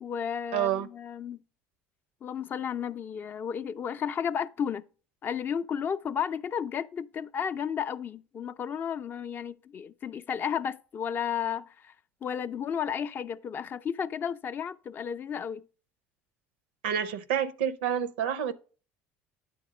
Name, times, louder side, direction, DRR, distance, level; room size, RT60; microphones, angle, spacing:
voice 1, 0.0-1.4 2.2-4.8 5.2-11.9 12.2-15.6, left 8 dB, 40° left, 0.4 m, -33 dB
voice 2, 0.5-0.9 16.8-18.5, right 9 dB, 90° right, 0.6 m, -28 dB
9.2 x 3.6 x 4.9 m
supercardioid pair, 90°, 5 cm